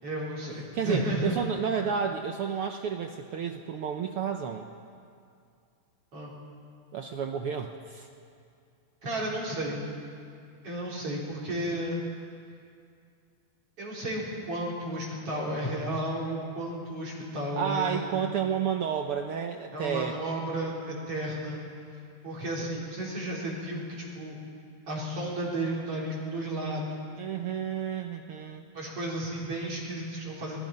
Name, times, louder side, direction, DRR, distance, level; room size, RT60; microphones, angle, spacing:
voice 1, 0.0-1.4 6.1-6.3 9.0-9.8 10.6-12.0 13.8-18.1 19.7-21.6 22.2-24.5 24.9-27.0 28.7-30.6, right 1 dB, 45° right, -4 dB, 4.9 m, -33 dB
voice 2, 0.7-4.7 6.9-8.1 17.6-20.2 27.2-28.6, right 7 dB, 75° right, 5 dB, 1.3 m, -31 dB
25.0 x 20.5 x 5.4 m, 2.3 s
omnidirectional pair, 3.6 m